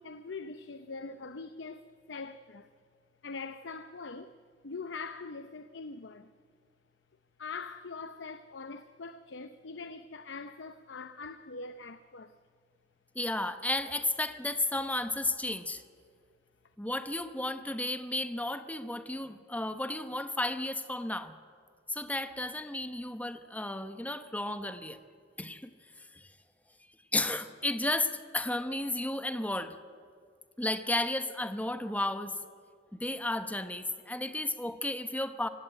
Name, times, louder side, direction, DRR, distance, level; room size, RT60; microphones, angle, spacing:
voice 1, 0.0-2.7 3.2-4.4 4.6-6.3 7.4-12.4, left 4 dB, 75° left, 0.7 m, -43 dB
voice 2, 13.1-15.8 16.8-21.3 21.9-25.0 25.4-25.7 26.1-26.3 27.1-29.7 30.6-32.4 32.9-35.5, left 1 dB, 10° left, 0.9 m, -33 dB
24.5 x 16.0 x 9.1 m
head